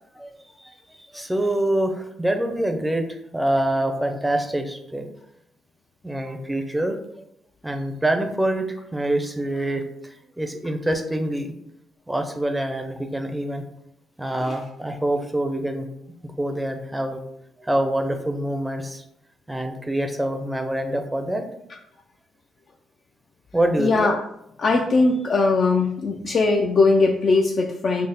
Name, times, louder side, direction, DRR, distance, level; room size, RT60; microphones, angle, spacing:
voice 1, 0.1-0.7 1.0-3.1 3.3-5.1 6.0-7.0 7.6-11.5 12.1-13.6 14.2-15.9 16.2-17.2 17.6-19.0 19.5-21.4 23.5-23.9, right 1 dB, 5° right, 5 dB, 0.5 m, -25 dB
voice 2, 23.8-24.2 24.6-28.1, left 3 dB, 50° left, 1 dB, 0.3 m, -20 dB
3.4 x 2.0 x 4.0 m, 0.75 s
cardioid pair, 90°, 0 cm